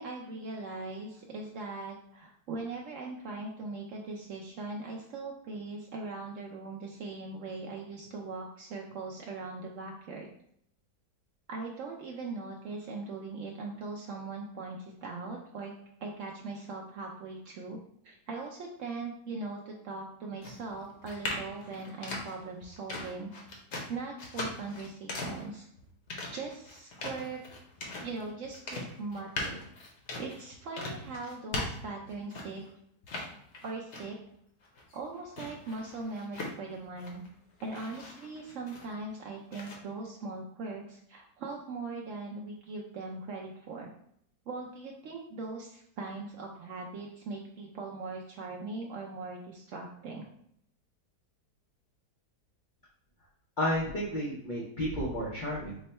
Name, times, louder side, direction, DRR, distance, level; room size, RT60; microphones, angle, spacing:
voice 1, 0.0-10.3 11.5-15.7 16.0-17.8 18.0-23.3 23.9-25.7 26.3-27.4 28.0-29.6 30.2-32.6 33.6-34.2 34.9-37.2 37.6-43.9 44.5-50.2, right 3 dB, 70° right, -1 dB, 0.7 m, -40 dB
sound 1, 20.4-32.7 33.0-34.3 34.6-37.3 37.6-39.1 39.5-39.7, left 2 dB, 55° left, 0.8 m, -40 dB
voice 2, 53.6-55.8, equal, 80° left, -5 dB, 0.4 m, -32 dB
3.6 x 2.1 x 4.1 m, 0.70 s
omnidirectional pair, 1.8 m